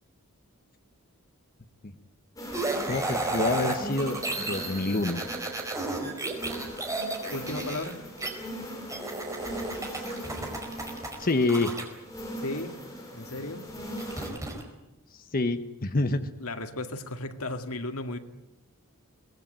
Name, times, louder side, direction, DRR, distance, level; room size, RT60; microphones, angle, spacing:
sound 1, 2.4-14.3, equal, 15° left, 6.9 m, -40 dB
sound 2, 2.5-8.3 8.9-11.8 14.0-14.6, right 2 dB, 15° right, 4.6 m, -33 dB
voice 1, 2.9-5.2 9.9-10.0 11.2-11.8 15.1-16.2, left 2 dB, 40° left, 8 dB, 1.1 m, -27 dB
voice 2, 7.3-8.0 12.4-12.8 13.1-13.7 16.4-18.2, left 2 dB, 90° left, 6 dB, 2.2 m, -35 dB
23.5 x 20.0 x 9.0 m, 0.95 s
head